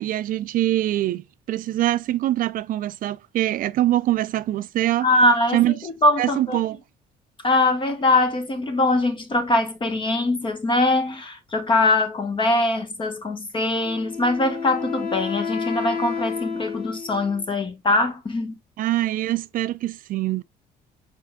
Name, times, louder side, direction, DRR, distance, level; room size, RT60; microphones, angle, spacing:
voice 1, 0.0-5.1 5.5-5.7 6.2-6.8 18.8-20.4, right 14 dB, 55° right, 0.4 m, -23 dB
voice 2, 5.0-6.6 7.4-18.6, left 2 dB, 30° left, 1.2 m, -22 dB
Wind instrument woodwind instrument, 13.8-17.4, left 6 dB, 90° left, 1.9 m, -31 dB
5.3 x 4.2 x 2.2 m
cardioid pair, 110°, 17 cm